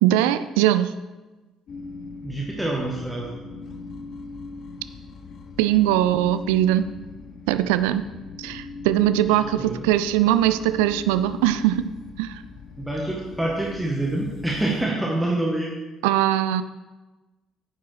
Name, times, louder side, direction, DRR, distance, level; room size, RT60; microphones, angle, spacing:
voice 1, 0.0-0.9 5.6-6.9 7.5-8.1 8.4-11.9 12.2-12.4 16.0-16.6, right 12 dB, 70° right, 12 dB, 0.3 m, -21 dB
sound 1, 1.7-14.8, left 4 dB, 50° left, 0.7 m, -40 dB
voice 2, 2.2-3.4 9.6-9.9 12.8-15.7, right 1 dB, 5° right, -2 dB, 1.3 m, -26 dB
9.7 x 7.3 x 3.3 m, 1.2 s
figure-of-eight pair, 50°, 0 cm